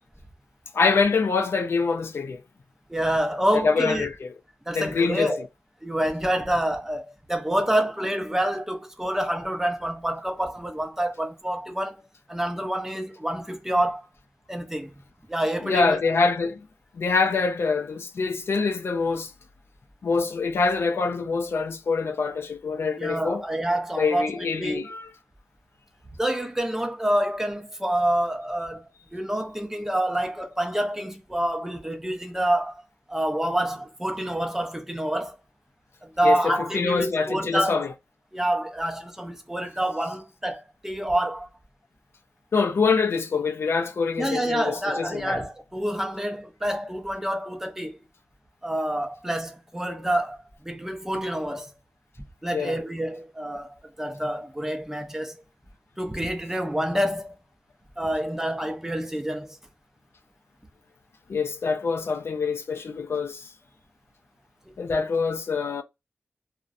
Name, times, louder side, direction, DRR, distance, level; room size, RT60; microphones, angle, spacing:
voice 1, 0.7-2.4 3.5-4.3 4.7-5.5 15.6-16.6 16.9-19.3 20.0-23.4 24.0-25.1 36.2-37.9 42.5-45.4 52.5-52.8 61.3-63.5 64.8-65.8, left 4 dB, 70° left, 0.4 m, -25 dB
voice 2, 2.9-4.1 4.7-5.5 5.8-14.1 14.5-14.9 15.3-16.0 23.0-24.3 24.6-24.8 26.2-32.8 33.1-35.4 36.0-37.9 38.3-41.5 44.2-48.0 48.6-51.7 52.4-53.7 54.0-55.4 56.0-57.4 58.0-59.6, right 1 dB, 10° right, 0.5 m, -27 dB
2.6 x 2.1 x 2.4 m
wide cardioid pair, 100°, 4 cm